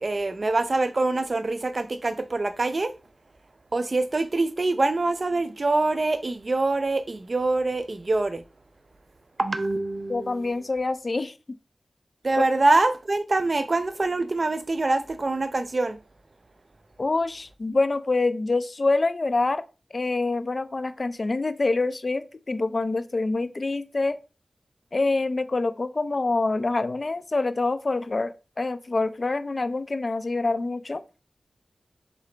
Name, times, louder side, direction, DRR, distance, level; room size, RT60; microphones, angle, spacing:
voice 1, 0.0-2.9 3.7-8.4 9.4-10.5 12.2-16.0, right 2 dB, 45° right, 0.5 m, -24 dB
voice 2, 10.1-11.3 17.0-19.6 19.9-24.2 24.9-31.0, left 3 dB, 45° left, 0.4 m, -26 dB
3.8 x 3.8 x 3.3 m
wide cardioid pair, 85°, 0 cm